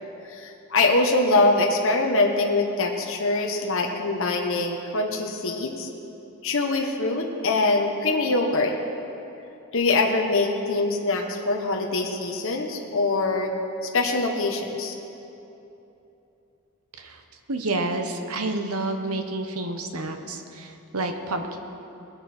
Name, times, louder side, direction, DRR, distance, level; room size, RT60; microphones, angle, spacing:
voice 1, 0.3-5.9 6.4-8.7 9.7-13.5 13.8-14.9, left 2 dB, 65° left, 1 dB, 1.2 m, -23 dB
voice 2, 17.5-21.6, right 2 dB, 90° right, 6 dB, 1.1 m, -29 dB
20.5 x 10.0 x 4.4 m, 2.9 s
head